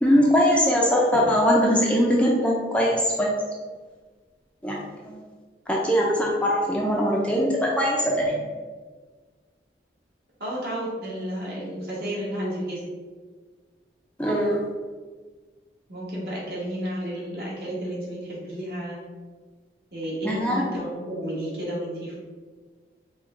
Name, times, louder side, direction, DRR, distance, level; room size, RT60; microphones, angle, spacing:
voice 1, 0.0-3.3 4.6-5.2 5.7-8.4 14.2-14.6 20.2-20.6, equal, 5° left, -3 dB, 0.4 m, -21 dB
voice 2, 10.4-12.8 15.9-19.0 19.9-22.2, equal, 60° right, -6 dB, 1.4 m, -32 dB
5.2 x 2.2 x 3.7 m, 1.4 s
head